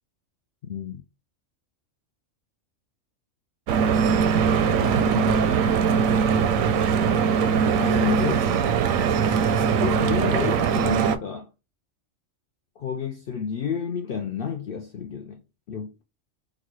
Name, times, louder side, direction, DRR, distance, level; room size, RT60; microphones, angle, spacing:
voice 1, 0.6-1.0 4.6-5.6 7.8-8.5 9.6-11.5 12.8-15.4 15.7-16.0, left 6 dB, 65° left, 0.5 m, -31 dB
Stream / Boat Water vehicle, 3.7-11.2, right 6 dB, 80° right, 1.0 m, -21 dB
4.0 x 2.2 x 3.0 m
omnidirectional pair, 1.4 m